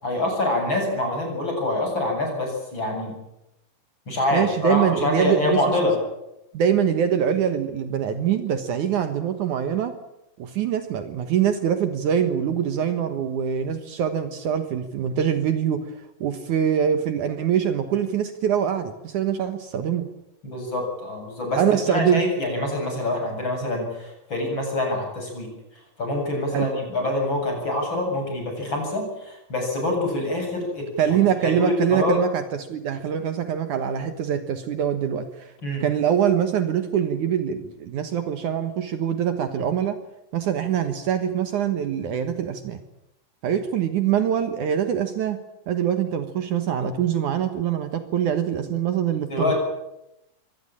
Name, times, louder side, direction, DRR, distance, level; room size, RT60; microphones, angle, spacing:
voice 1, 0.0-3.1 4.1-5.9 20.4-25.5 26.0-31.2 31.4-32.2 35.6-35.8 49.3-49.6, left 2 dB, 30° left, 2 dB, 8.6 m, -25 dB
voice 2, 4.3-5.7 6.5-9.9 10.4-20.1 21.6-22.2 26.5-26.7 31.0-35.5 35.8-40.0 40.3-42.8 43.4-45.4 45.7-49.5, right 9 dB, 65° right, 9 dB, 2.6 m, -24 dB
24.5 x 18.5 x 9.0 m, 0.87 s
omnidirectional pair, 4.0 m